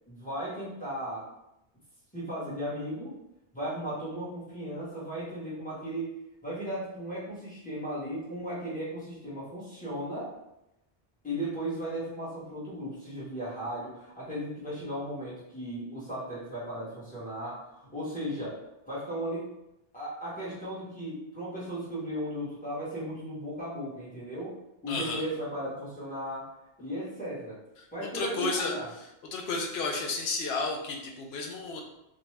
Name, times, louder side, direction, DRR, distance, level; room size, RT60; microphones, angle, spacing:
voice 1, 0.1-1.3 2.1-3.2 3.5-6.1 6.4-10.3 11.2-19.5 19.9-24.6 24.8-26.5 26.8-27.6 27.9-28.9, equal, 10° left, -9 dB, 1.1 m, -36 dB
voice 2, 24.9-25.2 27.8-27.9 28.1-28.7 29.3-31.8, left 3 dB, 70° left, 1 dB, 0.8 m, -32 dB
2.6 x 2.2 x 3.2 m, 0.87 s
omnidirectional pair, 1.1 m